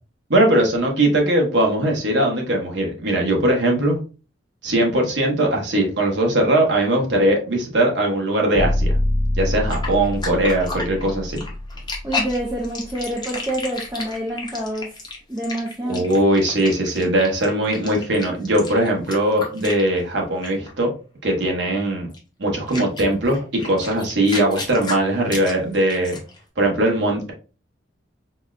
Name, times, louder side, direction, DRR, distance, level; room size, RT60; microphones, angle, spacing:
voice 1, 0.3-4.0 4.6-9.0 9.4-11.4 15.9-20.9 21.2-22.1 22.4-26.2 26.6-27.3, right 1 dB, 65° right, 1 dB, 0.9 m, -20 dB
sound 1, 8.5-12.6, left 1 dB, 85° left, 0.9 m, -24 dB
sound 2, 9.7-20.2 20.4-20.7 22.1-22.2 22.7-26.4, left 3 dB, 20° left, 0.7 m, -32 dB
voice 2, 12.0-14.9 15.3-16.0, right 1 dB, 15° right, -1 dB, 0.4 m, -27 dB
4.1 x 2.2 x 2.4 m, 0.35 s
head